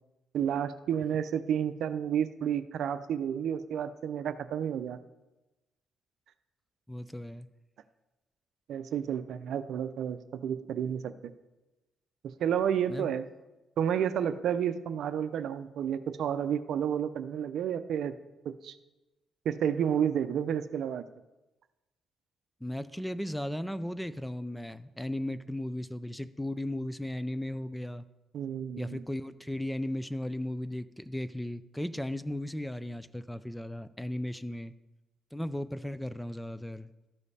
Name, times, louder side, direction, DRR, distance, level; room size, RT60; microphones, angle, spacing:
voice 1, 0.3-5.0 8.7-11.3 12.4-13.3 13.8-18.1 18.4-18.8 19.4-21.1 28.3-29.0, right 8 dB, 70° right, 0.5 m, -31 dB
voice 2, 6.9-7.5 12.9-13.1 22.6-28.1 28.8-34.7 35.3-36.9, left 1 dB, 5° left, 0.4 m, -36 dB
13.5 x 5.1 x 4.1 m
cardioid pair, 90°, 0 cm